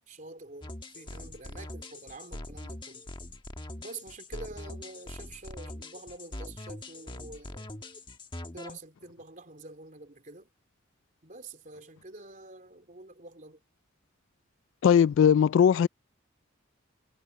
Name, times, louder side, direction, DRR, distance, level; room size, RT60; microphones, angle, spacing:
voice 1, 0.1-3.0 3.8-7.7 8.5-10.5 11.2-13.6, right 2 dB, 45° right, 3.8 m, -47 dB
sound 1, 0.6-8.8, left 1 dB, 25° left, 1.2 m, -42 dB
voice 2, 14.8-15.9, left 8 dB, 75° left, 0.3 m, -19 dB
head